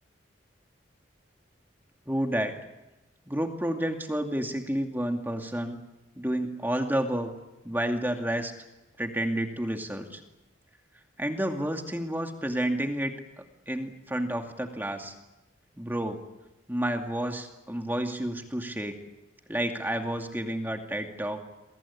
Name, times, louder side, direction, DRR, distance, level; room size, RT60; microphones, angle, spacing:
voice 1, 2.1-2.6 3.3-5.8 6.2-7.3 7.6-8.5 9.0-10.2 11.2-13.1 13.7-15.1 15.8-16.2 16.7-19.0 19.5-21.4, right 1 dB, 10° right, 4 dB, 2.4 m, -30 dB
29.0 x 23.0 x 8.5 m, 1.0 s
head